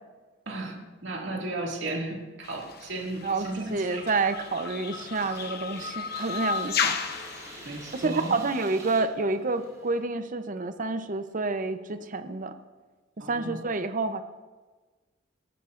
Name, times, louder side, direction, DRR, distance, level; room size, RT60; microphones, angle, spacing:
voice 1, 0.5-4.1 7.6-8.4 13.2-13.6, right 2 dB, 70° right, 0 dB, 2.2 m, -35 dB
sound 1, 2.4-8.0, left 6 dB, 55° left, 0.8 m, -34 dB
voice 2, 3.2-7.0 7.9-12.5 13.3-14.2, right 3 dB, 45° right, 9 dB, 0.7 m, -29 dB
sound 2, 4.9-10.0, right 2 dB, 20° right, 4.0 m, -47 dB
18.5 x 14.5 x 2.6 m, 1.3 s
head